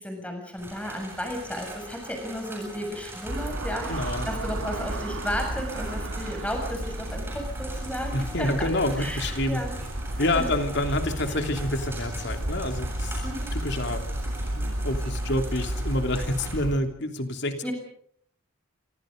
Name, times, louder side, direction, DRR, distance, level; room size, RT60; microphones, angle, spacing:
voice 1, 0.0-8.7 9.0-9.7 10.1-10.5 11.3-11.4 13.2-13.5 17.6-17.7, equal, 5° left, 4 dB, 7.2 m, -34 dB
sound 1, 0.6-16.5, right 2 dB, 10° right, 7.9 m, -42 dB
sound 2, 3.3-16.8, right 1 dB, 85° right, 2.8 m, -32 dB
voice 2, 3.9-4.3 8.1-9.6 10.2-13.2 13.5-14.0 14.6-17.6, left 1 dB, 55° left, 6 dB, 3.1 m, -28 dB
28.5 x 25.0 x 5.3 m, 0.64 s
head